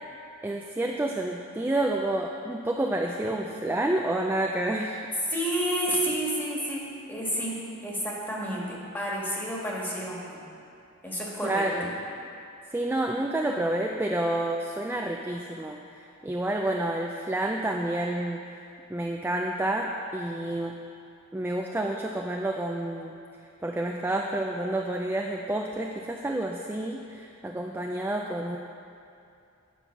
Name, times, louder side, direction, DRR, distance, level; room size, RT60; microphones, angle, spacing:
voice 1, 0.4-5.0 11.4-11.9 12.7-15.8 16.2-18.4 18.9-20.7 21.3-23.2 23.6-28.6, right 1 dB, 10° right, 0 dB, 0.3 m, -29 dB
voice 2, 5.3-10.4 11.0-11.6, right 1 dB, 10° left, -5 dB, 1.6 m, -30 dB
9.2 x 5.4 x 5.9 m, 2.6 s
head